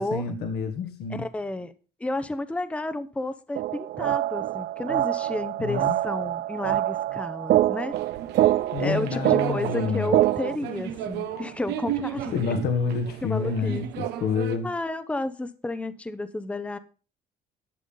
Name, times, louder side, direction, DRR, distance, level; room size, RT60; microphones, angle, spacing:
voice 1, 0.0-1.2 5.6-6.0 8.7-10.1 12.3-14.7, left 5 dB, 75° left, 1.7 m, -28 dB
voice 2, 1.1-1.7 2.0-7.9 8.8-12.4 13.2-13.8 14.6-16.8, left 2 dB, 5° left, 0.8 m, -31 dB
sound 1, 3.6-10.6, right 14 dB, 60° right, 0.5 m, -25 dB
sound 2, 7.9-14.6, right 11 dB, 90° right, 1.2 m, -34 dB
11.5 x 7.1 x 5.5 m
cardioid pair, 110°, 17 cm